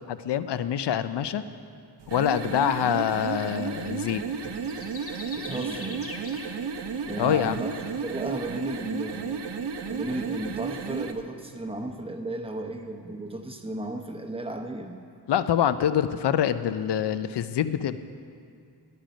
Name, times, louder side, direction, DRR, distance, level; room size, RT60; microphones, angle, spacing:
voice 1, 0.1-1.4 2.1-4.2 7.2-7.6 15.3-18.0, left 9 dB, 85° left, 12 dB, 0.5 m, -25 dB
sound 1, 2.0-11.2, right 5 dB, 90° right, 0.7 m, -33 dB
sound 2, 4.4-8.1, left 3 dB, 35° left, 1.0 m, -43 dB
voice 2, 5.3-6.0 7.0-7.7 8.0-9.5 9.9-14.9, right 1 dB, 15° right, 4 dB, 0.8 m, -34 dB
11.5 x 10.5 x 5.0 m, 2.3 s
wide cardioid pair, 130°, 40 cm